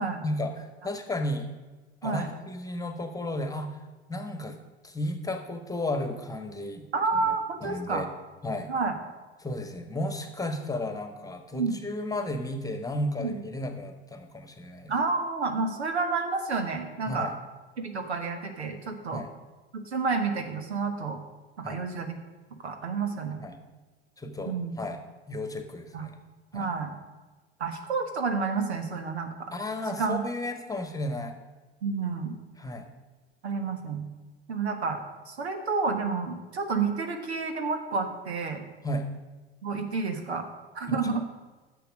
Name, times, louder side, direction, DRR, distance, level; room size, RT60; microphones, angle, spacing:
voice 1, 0.2-1.5 2.0-3.7 4.1-4.5 4.8-6.8 7.2-7.3 7.6-8.1 8.4-8.7 9.4-14.9 17.1-17.3 19.1-19.3 21.6-21.8 23.4-23.6 24.2-25.0 25.3-26.1 26.5-26.7 29.5-31.4 32.6-32.9 38.8-39.1 40.9-41.0, left 1 dB, 10° left, 7 dB, 1.3 m, -33 dB
voice 2, 6.9-8.1 8.7-8.9 11.5-11.8 13.2-13.3 14.9-17.3 17.8-19.2 19.9-21.2 21.6-22.1 22.6-23.4 24.4-24.7 25.9-26.0 26.5-26.9 27.6-29.5 30.0-30.2 31.8-32.4 33.4-34.0 34.5-35.0 35.3-38.6 39.6-40.5 40.7-41.2, right 4 dB, 85° right, 6 dB, 1.4 m, -29 dB
10.5 x 7.0 x 6.4 m, 1.2 s
figure-of-eight pair, 80°, 32 cm